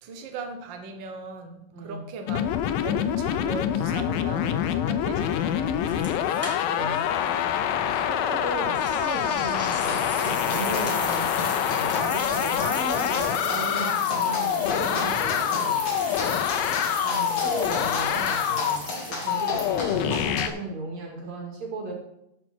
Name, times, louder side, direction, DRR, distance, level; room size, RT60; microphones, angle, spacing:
voice 1, 0.0-2.4 2.8-6.3 7.7-8.0 13.7-14.2 16.3-16.6, right 3 dB, 80° right, 5 dB, 1.0 m, -39 dB
voice 2, 1.7-2.0 6.6-7.0 7.8-11.3 11.7-15.9 16.9-21.9, right 2 dB, 50° right, 0 dB, 3.7 m, -36 dB
sound 1, 2.3-18.8 19.3-20.5, left 9 dB, 85° left, 2.5 m, -26 dB
sound 2, 5.9-7.0 7.3-7.4 8.7-20.0, left 1 dB, 5° left, 1.6 m, -37 dB
sound 3, 9.9-20.4, left 2 dB, 45° left, 3.4 m, -35 dB
14.5 x 6.2 x 4.6 m, 0.80 s
omnidirectional pair, 4.0 m